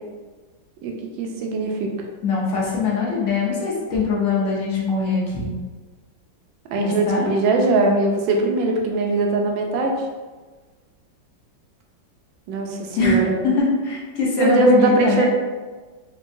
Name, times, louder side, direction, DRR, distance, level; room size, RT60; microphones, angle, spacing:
voice 1, 0.8-1.9 6.7-9.9 12.5-13.3 14.4-15.3, right 2 dB, 75° right, 1 dB, 1.3 m, -20 dB
voice 2, 2.2-5.5 6.8-7.3 13.0-13.2 13.4-15.3, left 4 dB, 55° left, -5 dB, 0.9 m, -22 dB
4.5 x 2.2 x 2.6 m, 1.3 s
omnidirectional pair, 2.1 m